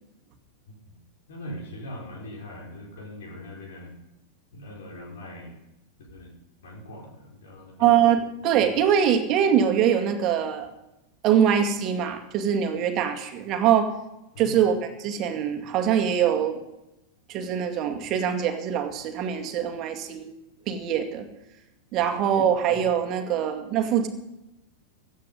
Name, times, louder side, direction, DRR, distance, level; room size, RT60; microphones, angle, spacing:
voice 1, 1.3-3.9 4.5-5.6 6.0-6.3 6.6-7.9 14.3-14.5 22.0-22.1, left 1 dB, 60° left, 0 dB, 4.8 m, -41 dB
voice 2, 7.8-10.7 11.2-13.9 14.4-16.6 17.3-20.3 20.7-21.2 21.9-24.1, right 8 dB, 35° right, 4 dB, 2.2 m, -23 dB
16.5 x 12.0 x 5.5 m, 0.94 s
figure-of-eight pair, 90°, 0 cm